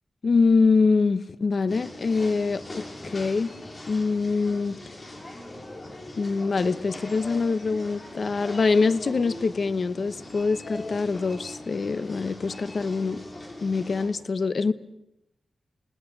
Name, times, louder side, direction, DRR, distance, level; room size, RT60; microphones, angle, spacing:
voice 1, 0.2-3.5 3.9-4.8 6.1-13.2 13.6-14.7, left 4 dB, 55° left, 14 dB, 1.0 m, -24 dB
sound 1, 1.7-14.1, left 1 dB, 35° left, 5.9 m, -41 dB
29.0 x 18.5 x 6.2 m, 0.86 s
wide cardioid pair, 85°, 0 cm